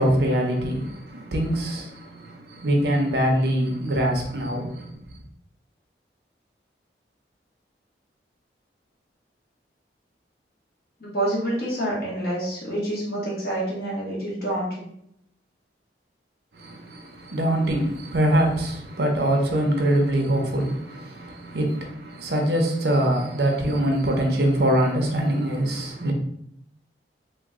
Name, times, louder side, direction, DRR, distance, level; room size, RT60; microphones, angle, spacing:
voice 1, 0.0-4.9 16.6-26.1, right 1 dB, 60° right, 0.6 m, -23 dB
voice 2, 11.0-14.8, right 1 dB, 55° left, 1.2 m, -27 dB
3.0 x 2.1 x 3.6 m
head